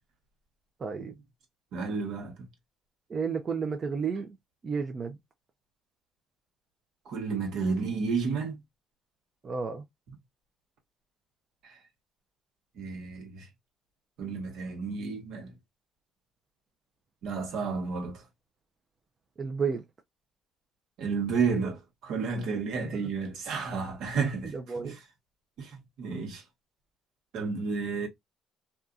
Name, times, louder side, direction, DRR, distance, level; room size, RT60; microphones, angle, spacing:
voice 1, 0.8-1.2 3.1-4.4 4.6-5.2 9.4-9.9 19.4-19.8 22.5-23.1 24.4-25.0, right 5 dB, 40° right, 0.5 m, -32 dB
voice 2, 1.7-2.3 7.1-8.6 11.6-11.8 12.8-13.5 14.2-15.5 17.2-18.2 21.0-24.5 24.8-24.9 25.6-26.4 27.3-28.1, right 5 dB, 75° right, 1.2 m, -31 dB
2.7 x 2.3 x 2.4 m
cardioid pair, 100°, 0 cm